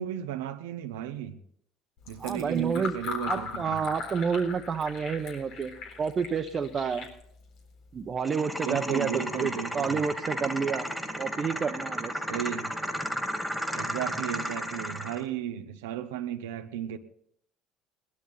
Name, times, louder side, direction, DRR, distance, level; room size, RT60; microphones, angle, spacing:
voice 1, 0.0-1.4 2.1-3.8 8.6-10.0 12.3-12.7 13.7-17.0, right 10 dB, 90° right, 0.9 m, -34 dB
Fill (with liquid), 2.0-8.2, left 4 dB, 70° left, 4.0 m, -40 dB
voice 2, 2.2-3.0 3.3-5.7 6.0-7.1 7.9-10.9 11.2-12.1, right 6 dB, 40° right, 1.2 m, -29 dB
sound 1, 8.2-15.2, equal, ahead, 2.5 m, -33 dB
19.0 x 12.5 x 4.1 m
supercardioid pair, 75°, 0 cm